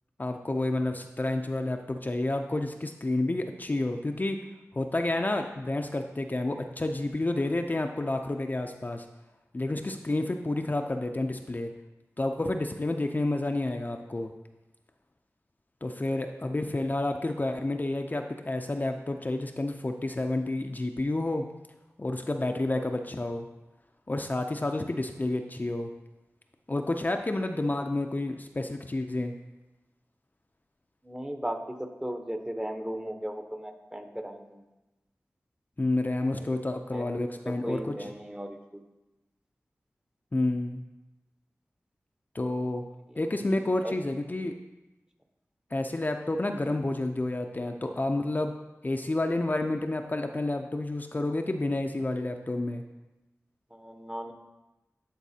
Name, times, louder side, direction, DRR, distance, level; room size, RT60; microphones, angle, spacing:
voice 1, 0.2-4.4 4.7-9.1 9.5-11.7 12.2-14.3 15.8-21.5 22.0-23.5 24.1-25.9 26.7-29.3 35.8-38.1 40.3-40.8 42.3-42.8 43.1-44.5 45.7-48.5 48.8-52.8, left 2 dB, 35° left, 5 dB, 0.4 m, -30 dB
voice 2, 31.0-34.6 36.4-36.5 36.9-37.0 37.4-38.8 43.8-43.9 53.7-54.3, right 1 dB, 15° right, 5 dB, 0.8 m, -36 dB
12.0 x 4.0 x 2.7 m, 1.0 s
cardioid pair, 45°, 5 cm